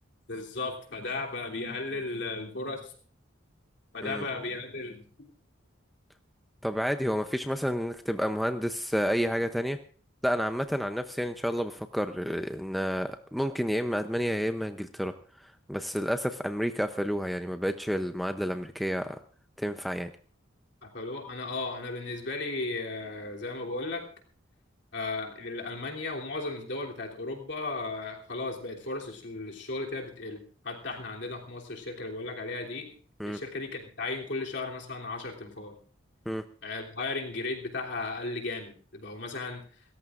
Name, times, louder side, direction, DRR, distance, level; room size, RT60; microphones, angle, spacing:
voice 1, 0.3-2.9 3.9-5.1 20.8-24.1 24.9-32.9 33.3-35.7 36.6-39.6, left 3 dB, 60° left, 0 dB, 3.1 m, -35 dB
voice 2, 6.6-9.8 10.2-19.2 19.6-20.1 33.2-33.4 36.3-36.4, equal, ahead, 7 dB, 0.6 m, -30 dB
27.5 x 14.0 x 2.5 m, 0.43 s
head